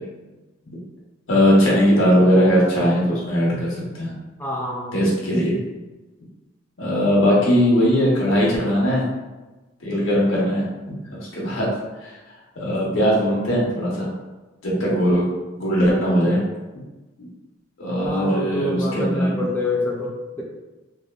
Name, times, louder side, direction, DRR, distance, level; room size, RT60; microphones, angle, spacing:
voice 1, 1.3-4.1 4.9-5.5 6.8-9.0 9.8-10.7 11.1-11.7 12.0-12.2 12.6-14.1 14.6-15.2 15.6-16.4 17.8-19.4, equal, 85° left, -5 dB, 0.9 m, -19 dB
voice 2, 4.4-4.9 18.0-20.4, left 2 dB, 10° left, -3 dB, 0.3 m, -27 dB
2.9 x 2.2 x 2.3 m, 1.2 s
head